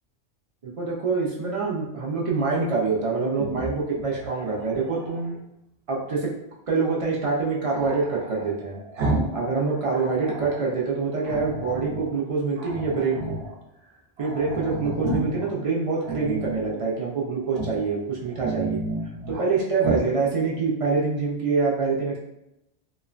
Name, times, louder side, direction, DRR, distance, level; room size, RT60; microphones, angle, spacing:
voice 1, 0.6-5.4 5.9-6.3 6.7-8.8 9.3-13.3 14.2-18.8 19.3-22.2, right 4 dB, 50° right, -3 dB, 0.4 m, -25 dB
Growling, 3.3-5.3 7.7-9.4 9.7-10.6 11.2-12.1 12.6-13.6 13.9-14.0 14.2-15.5 16.0-16.8 17.5-17.9 18.3-19.5 19.8-20.1, right 2 dB, 70° right, 0.8 m, -32 dB
3.0 x 2.1 x 2.4 m, 0.86 s
omnidirectional pair, 1.1 m